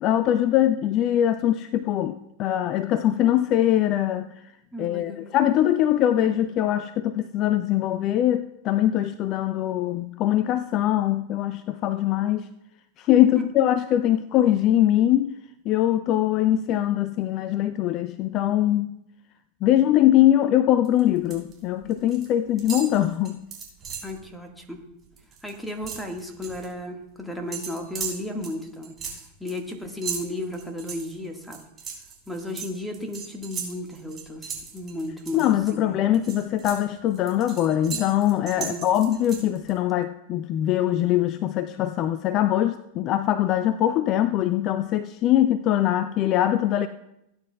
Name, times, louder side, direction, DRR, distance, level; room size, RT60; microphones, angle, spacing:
voice 1, 0.0-4.3 4.8-12.5 13.0-15.3 15.7-18.9 19.6-23.4 35.3-46.9, left 12 dB, 35° left, 13 dB, 0.4 m, -22 dB
voice 2, 4.7-5.3 13.3-13.4 24.0-24.8 25.4-29.0 29.4-31.6 32.3-36.0 38.6-38.8, left 1 dB, 5° left, 4 dB, 1.6 m, -34 dB
sound 1, 20.8-21.5 21.8-22.3 22.6-24.2 24.6-24.8 25.0-26.7 27.5-35.7 36.1-39.7, right 6 dB, 25° right, 3.5 m, -37 dB
17.5 x 9.5 x 2.3 m, 0.85 s
figure-of-eight pair, 90°, 0 cm